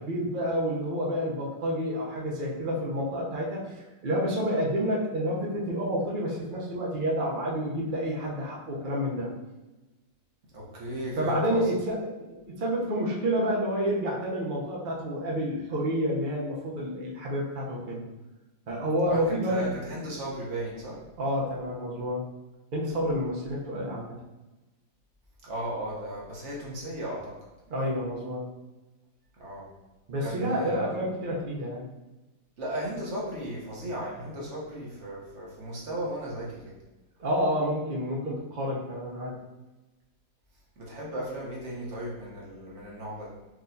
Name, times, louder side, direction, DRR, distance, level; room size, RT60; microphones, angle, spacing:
voice 1, 0.0-3.6 4.0-9.3 11.2-18.0 18.7-19.7 21.2-22.2 22.7-24.2 27.7-28.5 30.1-31.8 37.2-39.4, equal, 85° right, -4 dB, 0.4 m, -29 dB
voice 2, 10.5-11.7 19.1-21.0 25.4-27.3 29.4-29.7 30.2-31.1 32.6-36.7 40.8-43.3, right 1 dB, 45° right, -4 dB, 1.0 m, -35 dB
4.6 x 3.1 x 2.6 m, 1.1 s
omnidirectional pair, 2.1 m